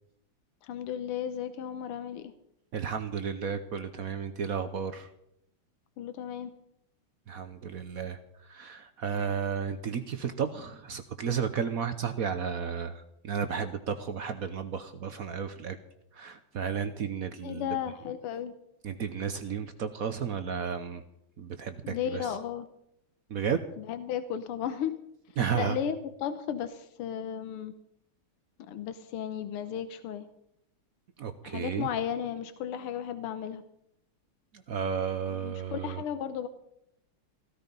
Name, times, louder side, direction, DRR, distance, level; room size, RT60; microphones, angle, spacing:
voice 1, 0.6-2.3 6.0-6.5 17.4-18.5 21.8-22.7 23.8-24.9 25.5-27.7 28.6-30.2 31.4-33.6 35.3-36.5, left 9 dB, 85° left, 10 dB, 1.8 m, -34 dB
voice 2, 2.7-5.1 7.3-15.8 16.1-17.7 18.8-21.0 21.4-22.3 23.3-23.6 25.4-25.8 31.2-31.9 34.5-36.0, right 7 dB, 55° right, 10 dB, 1.0 m, -33 dB
15.5 x 14.0 x 5.3 m, 0.77 s
omnidirectional pair, 2.4 m